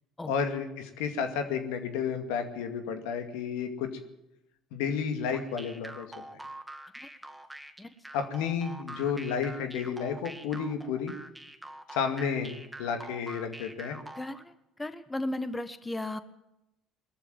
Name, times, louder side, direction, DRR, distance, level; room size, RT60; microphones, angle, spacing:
voice 1, 0.3-3.9 4.7-6.1 8.1-11.1 11.9-14.0, left 6 dB, 75° left, 7 dB, 2.3 m, -31 dB
sound 1, 5.3-14.4, right 1 dB, 5° right, 2.0 m, -45 dB
voice 2, 14.1-14.5 14.8-16.2, left 1 dB, 15° left, 11 dB, 1.5 m, -35 dB
21.5 x 14.0 x 9.4 m, 0.90 s
hypercardioid pair, 65°, 0 cm